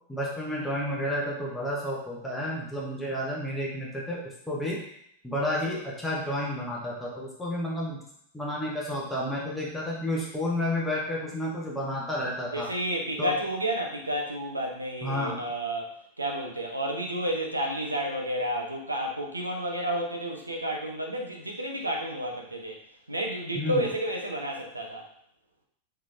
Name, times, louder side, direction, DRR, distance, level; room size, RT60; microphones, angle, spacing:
voice 1, 0.1-4.8 5.2-8.0 8.3-12.7 13.2-13.3 15.0-15.4 23.5-23.9, left 1 dB, 5° left, -5 dB, 1.0 m, -31 dB
voice 2, 12.5-22.8 23.1-25.1, right 1 dB, 80° right, 1 dB, 0.8 m, -31 dB
3.8 x 3.4 x 3.3 m, 0.71 s
figure-of-eight pair, 90°, 0 cm